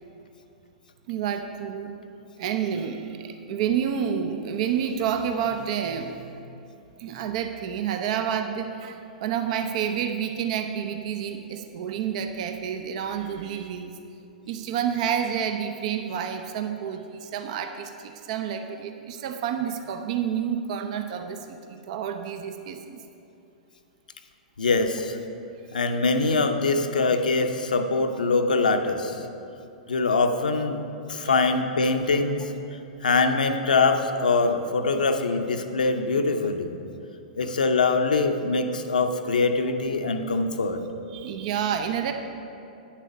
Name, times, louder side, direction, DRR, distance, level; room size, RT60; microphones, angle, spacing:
voice 1, 1.1-1.9 2.4-6.3 7.0-13.9 14.5-23.0 31.2-31.4 34.9-35.0 41.1-42.1, right 8 dB, 55° right, 6 dB, 0.6 m, -29 dB
voice 2, 24.6-25.2 25.7-29.3 29.9-30.8 31.1-32.5 33.0-36.7 37.3-40.8, left 3 dB, 80° left, 6 dB, 0.7 m, -23 dB
9.1 x 7.4 x 5.2 m, 2.7 s
hypercardioid pair, 105°, 4 cm